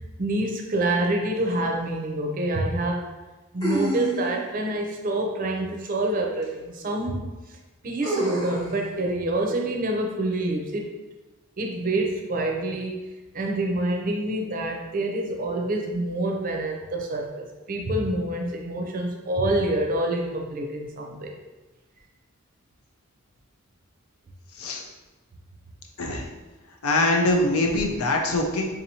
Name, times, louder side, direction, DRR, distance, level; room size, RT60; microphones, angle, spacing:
voice 1, 0.2-3.1 3.5-7.3 7.8-10.9 11.6-13.1 13.3-21.3, right 1 dB, 40° right, 1 dB, 0.5 m, -27 dB
sound 1, 1.5-1.6 3.6-4.6 6.4-6.5 8.0-8.7, right 1 dB, 20° left, 0.8 m, -28 dB
voice 2, 26.0-26.3 26.8-28.7, left 2 dB, 80° left, 1 dB, 0.6 m, -23 dB
3.8 x 2.8 x 2.8 m, 1.2 s
head